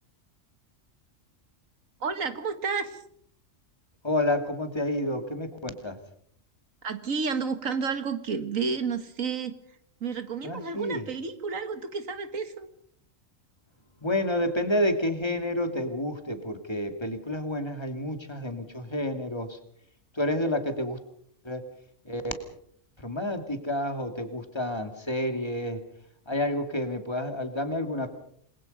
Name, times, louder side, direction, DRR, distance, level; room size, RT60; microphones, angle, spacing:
voice 1, 2.0-3.0 6.8-9.6 10.0-12.7, right 5 dB, 85° right, 10 dB, 2.0 m, -31 dB
voice 2, 4.0-6.0 10.4-11.0 14.0-19.6 20.1-21.0 21.4-21.6 22.1-22.3 23.0-25.8 26.3-28.1, left 1 dB, 20° left, 7 dB, 2.5 m, -29 dB
28.0 x 21.5 x 5.4 m, 0.67 s
omnidirectional pair, 1.4 m